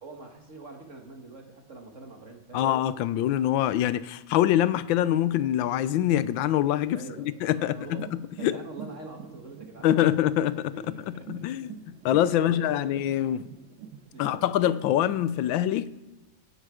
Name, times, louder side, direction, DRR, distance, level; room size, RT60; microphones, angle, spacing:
voice 1, 0.0-2.7 6.9-8.1 8.4-10.1 10.7-11.5 12.3-13.0 14.1-14.4, right 3 dB, 40° right, 1.7 m, -44 dB
voice 2, 2.5-7.0 7.4-8.6 9.8-10.7 11.1-13.5 14.2-15.9, left 12 dB, 90° left, 1.4 m, -25 dB
sound 1, 7.9-15.6, right 8 dB, 85° right, 1.5 m, -46 dB
16.5 x 10.5 x 4.9 m
omnidirectional pair, 2.1 m